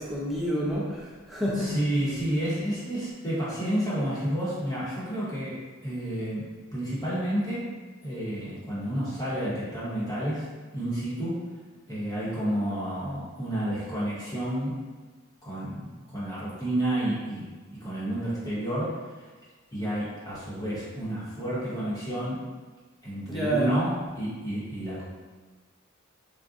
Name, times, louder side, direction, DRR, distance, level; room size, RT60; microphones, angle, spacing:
voice 1, 0.0-1.7 23.3-23.8, right 1 dB, ahead, -6 dB, 0.5 m, -28 dB
voice 2, 1.5-7.7 8.0-11.4 11.9-14.9 15.4-19.0 19.7-22.4 23.0-25.0, right 1 dB, 15° left, -9 dB, 0.9 m, -30 dB
3.6 x 2.2 x 2.5 m, 1.4 s
head